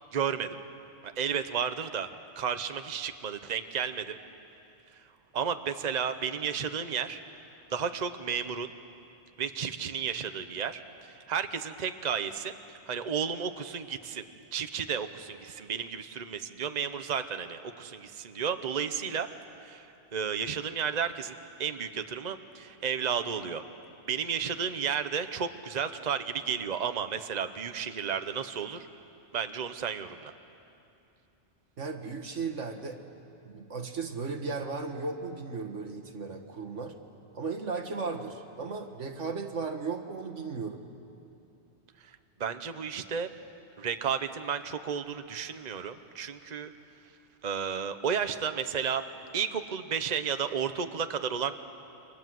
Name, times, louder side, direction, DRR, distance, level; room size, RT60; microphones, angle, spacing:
voice 1, 0.1-0.6 1.0-2.1 2.4-4.1 4.9-5.1 5.3-7.2 7.7-8.7 9.4-14.2 14.5-19.3 19.6-23.6 24.1-28.9 29.3-30.3 42.0-43.3 43.8-46.7 47.4-49.0 49.3-51.5, right 7 dB, 40° right, 9 dB, 1.0 m, -32 dB
voice 2, 31.8-33.0 33.4-37.0 37.3-40.9, right 4 dB, 85° right, 6 dB, 1.9 m, -36 dB
29.0 x 25.0 x 7.8 m, 2.7 s
omnidirectional pair, 1.2 m